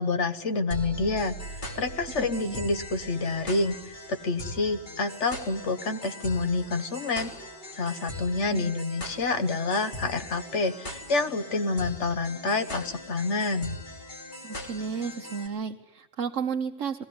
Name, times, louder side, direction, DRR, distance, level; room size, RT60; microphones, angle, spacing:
voice 1, 0.0-7.3 7.7-13.8, left 3 dB, 70° left, 8 dB, 1.6 m, -28 dB
sound 1, 0.7-15.5, equal, 40° left, 3.4 m, -40 dB
voice 2, 2.2-2.6 8.5-8.7 14.4-17.0, right 6 dB, 80° right, 3 dB, 1.3 m, -33 dB
21.5 x 16.0 x 9.5 m, 1.1 s
omnidirectional pair, 1.3 m